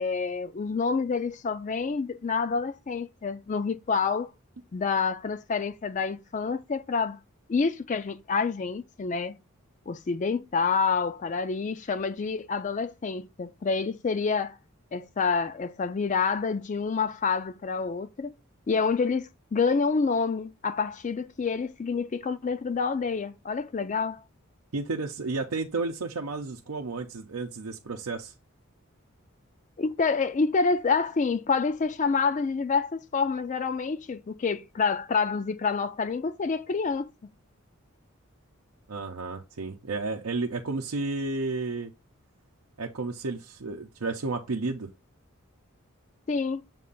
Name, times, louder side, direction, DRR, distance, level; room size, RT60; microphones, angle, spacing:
voice 1, 0.0-4.3 4.7-7.2 7.5-9.3 9.9-14.6 14.9-18.3 18.7-24.2 29.8-37.1 46.3-46.6, left 5 dB, 35° left, 0.3 m, -28 dB
voice 2, 24.7-28.3 38.9-41.9 42.8-44.9, right 3 dB, 85° right, 0.6 m, -32 dB
7.4 x 2.5 x 5.3 m
head